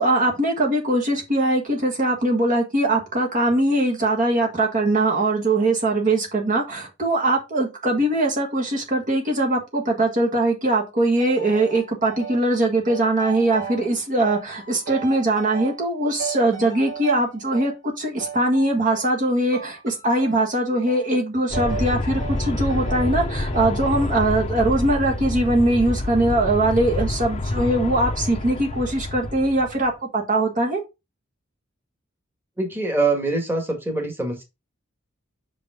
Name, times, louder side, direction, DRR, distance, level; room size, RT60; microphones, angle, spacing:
voice 1, 0.0-30.8, right 2 dB, 40° right, 1.5 m, -21 dB
sound 1, 11.2-12.4 12.9-13.9 14.2-15.9 16.2-17.8 18.2-19.2 19.5-20.5 20.9-21.1 21.5-23.1 23.5-23.9, right 6 dB, 60° right, 3.5 m, -36 dB
Aircraft, 21.5-29.9, left 2 dB, 30° left, 0.8 m, -27 dB
voice 2, 32.6-34.4, right 3 dB, 10° right, 1.7 m, -24 dB
6.0 x 5.0 x 3.7 m
head